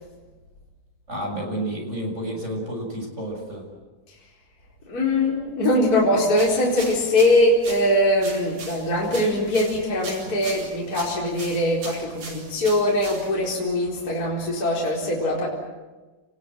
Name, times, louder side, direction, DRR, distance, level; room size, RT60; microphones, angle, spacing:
voice 1, 1.1-3.7, right 1 dB, 20° right, 0 dB, 6.9 m, -30 dB
voice 2, 4.9-15.5, left 1 dB, 25° left, -4 dB, 4.7 m, -22 dB
sound 1, 6.3-13.6, right 3 dB, 85° right, 6.0 m, -40 dB
29.0 x 20.5 x 7.8 m, 1.2 s
omnidirectional pair, 3.7 m